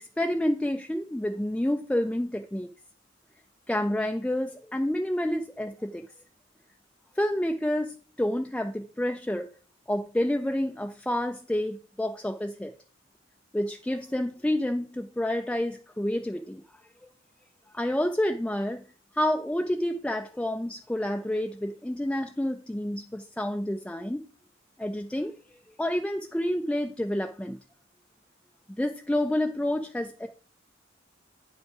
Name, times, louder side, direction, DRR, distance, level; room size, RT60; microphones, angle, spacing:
voice 1, 0.2-2.7 3.7-6.0 7.2-9.5 9.9-12.7 13.5-16.6 17.7-18.8 19.1-24.3 24.8-25.3 25.8-27.6 28.8-30.3, left 1 dB, 5° left, 4 dB, 0.4 m, -29 dB
9.0 x 5.4 x 4.7 m, 0.42 s
head